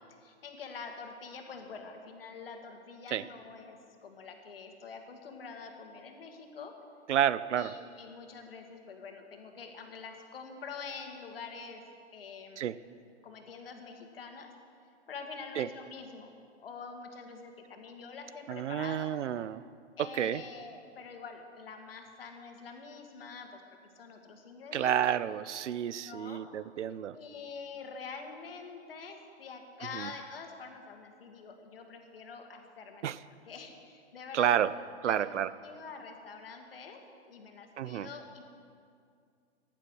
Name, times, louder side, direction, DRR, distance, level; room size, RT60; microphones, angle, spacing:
voice 1, 0.2-6.7 7.5-11.8 12.1-12.7 13.2-14.5 15.1-16.3 16.6-19.2 20.0-23.6 24.0-25.0 26.0-26.5 26.8-26.9 27.1-33.1 33.5-34.6 35.1-37.0 37.3-38.4, left 5 dB, 55° left, 4 dB, 2.0 m, -46 dB
voice 2, 7.1-7.7 12.6-12.8 15.6-15.7 18.5-19.6 20.0-20.4 24.7-27.2 29.9-30.1 33.0-33.2 34.3-34.7 35.0-35.5 37.8-38.1, right 10 dB, 85° right, 17 dB, 0.7 m, -30 dB
15.0 x 11.0 x 6.3 m, 2.3 s
hypercardioid pair, 180°, 35 cm